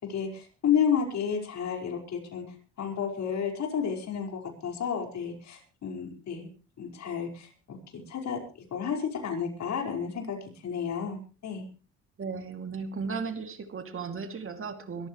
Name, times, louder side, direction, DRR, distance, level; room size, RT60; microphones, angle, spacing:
voice 1, 0.1-2.4 2.8-6.5 6.8-7.8 8.1-8.4 8.7-10.4 10.6-11.6, left 7 dB, 65° left, 2 dB, 5.1 m, -31 dB
voice 2, 12.2-15.1, right 5 dB, 45° right, 7 dB, 2.6 m, -35 dB
23.0 x 14.0 x 3.2 m, 0.34 s
cardioid pair, 90°, 30 cm